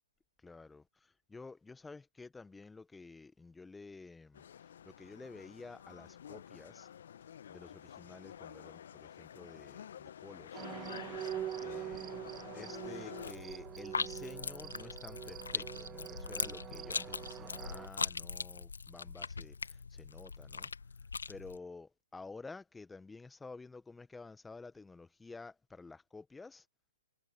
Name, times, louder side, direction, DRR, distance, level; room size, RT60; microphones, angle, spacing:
voice 1, 0.4-0.8 1.3-4.4 4.8-6.9 7.5-10.6 11.6-12.2 12.5-19.6 19.9-20.7 21.3-26.6, left 3 dB, 5° left, 1.4 m, -51 dB
sound 1, 4.3-13.3, left 9 dB, 60° left, 1.1 m, -49 dB
sound 2, 10.5-17.9, right 11 dB, 20° right, 0.5 m, -44 dB
sound 3, 13.2-21.6, left 4 dB, 80° left, 1.7 m, -41 dB
figure-of-eight pair, 125°, 0 cm